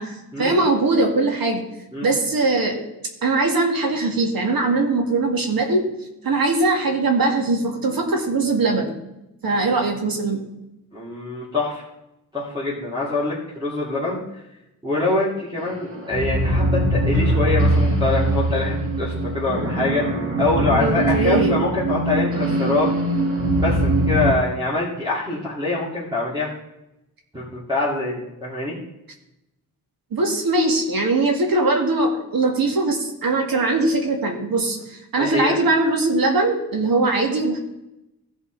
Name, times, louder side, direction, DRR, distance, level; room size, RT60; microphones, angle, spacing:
voice 1, 0.0-1.6 2.0-2.8 3.2-5.9 6.2-8.9 9.4-10.4 20.8-21.6 30.1-37.6, right 2 dB, 65° right, 2 dB, 2.1 m, -21 dB
voice 2, 10.9-11.8 12.3-14.2 14.8-20.1 20.4-22.9 23.6-26.5 27.3-28.7 35.2-35.6, left 2 dB, 10° right, -7 dB, 2.6 m, -24 dB
sound 1, 15.6-24.3, right 1 dB, 35° right, 1.7 m, -22 dB
15.5 x 5.7 x 4.0 m, 0.90 s
wide cardioid pair, 135°, 37 cm